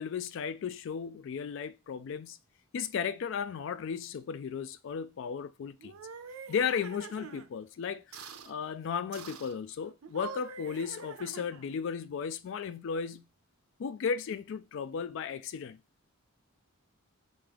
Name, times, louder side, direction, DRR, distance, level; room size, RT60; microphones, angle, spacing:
voice 1, 0.0-2.4 2.7-5.9 6.5-13.3 13.8-15.8, left 6 dB, 60° left, 0.3 m, -35 dB
sound 1, 5.8-7.5 8.1-8.5 9.1-9.6 10.0-11.8, right 5 dB, 85° right, 0.5 m, -45 dB
3.5 x 2.8 x 3.4 m
head